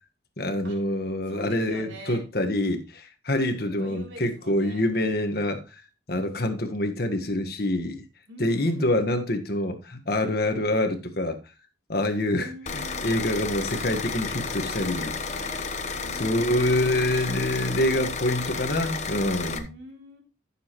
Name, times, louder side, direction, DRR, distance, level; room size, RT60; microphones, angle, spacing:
voice 1, 0.4-5.8 6.1-8.0 8.4-11.4 11.9-12.5 13.0-15.1 16.1-19.7, left 1 dB, 50° left, 1.5 m, -26 dB
voice 2, 1.3-2.2 3.6-4.9 8.3-8.9 12.3-13.1 14.6-15.7 16.0-16.8 19.7-20.2, right 1 dB, 80° right, 3.4 m, -44 dB
sound 1, 12.7-19.6, left 4 dB, 35° left, 1.1 m, -32 dB
14.5 x 7.2 x 3.1 m
head